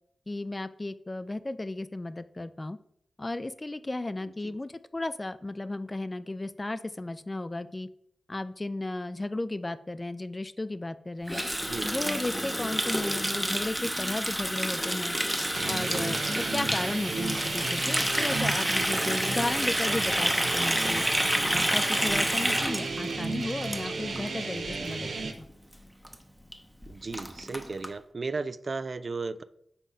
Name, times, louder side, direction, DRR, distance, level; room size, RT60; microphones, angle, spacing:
voice 1, 0.3-2.8 3.2-7.9 8.3-11.4 11.8-15.2 15.6-21.0 21.5-25.5, left 2 dB, 25° left, 13 dB, 0.4 m, -34 dB
Water tap faucet, 11.3-24.3 24.6-24.8 25.1-25.5 25.7-25.8 26.0-26.1 26.5-26.6 26.8-27.9, equal, ahead, 0.8 m, -29 dB
voice 2, 11.6-11.9 13.1-13.2 16.8-16.9 22.6-23.1 26.9-29.4, right 3 dB, 50° right, 13 dB, 0.3 m, -36 dB
sound 1, 15.5-25.3, right 4 dB, 85° right, 0.9 m, -34 dB
5.6 x 4.1 x 4.8 m, 0.68 s
cardioid pair, 75°, 0 cm